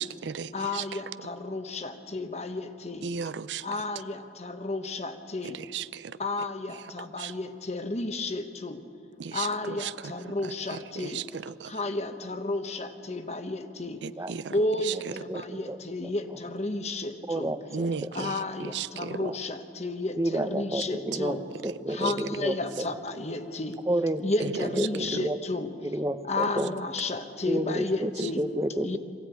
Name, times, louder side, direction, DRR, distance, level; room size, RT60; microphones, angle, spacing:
voice 1, 0.0-0.5 0.7-0.8 3.0-3.6 5.7-6.0 7.2-7.3 9.2-9.5 9.8-9.9 11.0-11.2 11.6-11.7 14.0-14.5 17.7-18.3 18.7-19.1, right 6 dB, 75° right, 16 dB, 0.5 m, -34 dB
voice 2, 0.5-3.1 3.6-5.6 6.2-8.8 9.3-11.2 11.6-14.0 14.5-17.5 18.1-21.4 21.9-23.8 24.2-25.7 26.3-28.4 28.8-29.0, left 2 dB, 35° left, 8 dB, 1.2 m, -32 dB
voice 3, 15.3-15.8 17.3-18.3 19.2-19.3 20.2-21.4 21.6-22.9 23.9-25.4 25.8-26.7 27.5-29.0, right 1 dB, 15° right, 11 dB, 0.8 m, -30 dB
23.5 x 15.5 x 9.3 m, 2.6 s
head